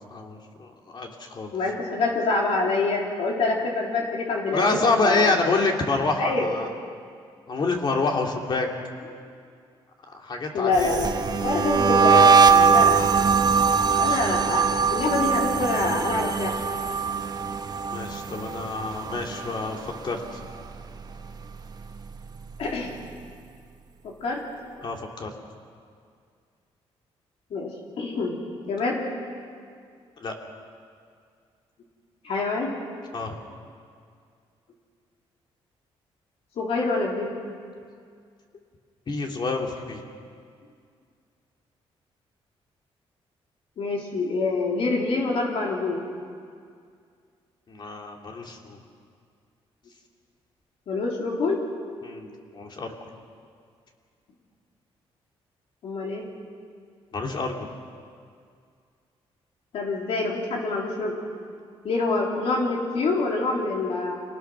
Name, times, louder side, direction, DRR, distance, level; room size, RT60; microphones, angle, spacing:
voice 1, 0.1-1.5 4.5-6.7 7.5-8.7 10.1-11.0 13.9-14.2 17.9-20.4 24.8-25.3 30.2-30.3 33.1-33.4 39.1-40.0 47.7-48.8 52.0-52.9 57.1-57.7, left 3 dB, 45° left, 1 dB, 3.0 m, -27 dB
voice 2, 1.5-4.8 5.0-5.5 6.2-6.4 10.5-13.1 14.0-16.5 22.6-22.9 24.0-24.4 27.5-28.4 28.7-29.0 32.2-32.7 36.6-37.3 43.8-46.0 50.9-51.6 55.8-56.3 59.7-61.2 61.8-64.2, left 3 dB, 70° left, -1 dB, 3.6 m, -26 dB
sound 1, 10.7-19.9 20.2-20.6 21.0-22.5, right 6 dB, 40° right, 1.1 m, -22 dB
27.0 x 19.0 x 6.3 m, 2.2 s
cardioid pair, 100°, 11 cm